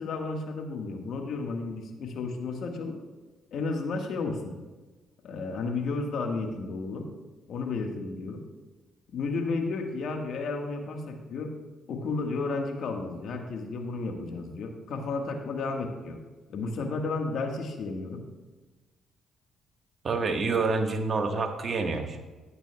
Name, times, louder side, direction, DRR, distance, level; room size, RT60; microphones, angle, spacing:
voice 1, 0.0-3.0 3.5-4.5 5.2-7.1 7.5-8.4 9.1-11.5 11.9-16.2 16.5-18.2, left 3 dB, 65° left, 3 dB, 1.4 m, -32 dB
voice 2, 20.0-22.2, right 4 dB, 50° right, 4 dB, 1.3 m, -27 dB
12.5 x 9.1 x 2.3 m, 1.2 s
supercardioid pair, 60°, 0 cm